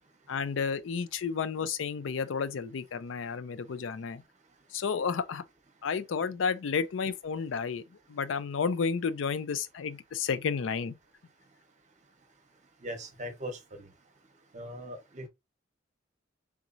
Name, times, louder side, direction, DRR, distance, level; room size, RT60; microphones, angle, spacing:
voice 1, 0.3-4.2 4.7-5.4 5.8-7.8 8.1-11.0, left 6 dB, 80° left, 0.4 m, -31 dB
voice 2, 12.8-13.8 14.5-15.3, equal, 40° right, 0.8 m, -40 dB
3.6 x 3.0 x 2.5 m
head